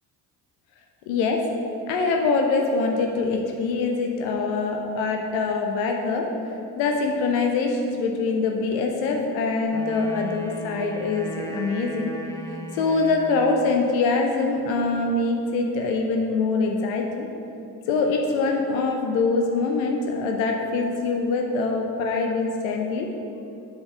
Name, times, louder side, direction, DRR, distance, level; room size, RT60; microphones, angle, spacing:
voice 1, 1.1-1.4 1.9-6.3 6.8-12.1 12.7-17.3 17.9-23.1, left 3 dB, 70° left, 2 dB, 0.8 m, -24 dB
Wind instrument woodwind instrument, 9.7-13.7, right 1 dB, 5° left, 0.8 m, -37 dB
7.3 x 4.6 x 4.8 m, 2.8 s
hypercardioid pair, 45°, 48 cm